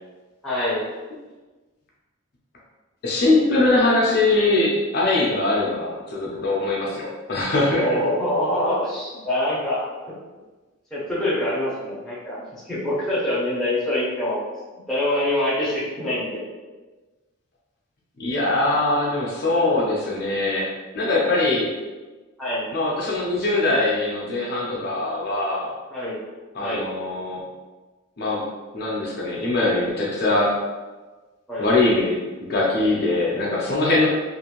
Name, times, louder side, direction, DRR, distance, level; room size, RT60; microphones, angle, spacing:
voice 1, 0.4-0.8 7.8-9.9 10.9-14.4 14.7-16.4 22.4-22.6 25.9-26.2 26.6-26.8 31.5-31.7, left 1 dB, ahead, -9 dB, 0.8 m, -25 dB
voice 2, 3.0-7.8 18.2-20.7 20.9-21.7 22.7-25.7 26.5-27.4 28.2-28.4 28.7-30.6 31.6-32.2 32.5-34.1, left 2 dB, 50° left, -4 dB, 0.5 m, -22 dB
2.6 x 2.5 x 2.9 m, 1.2 s
head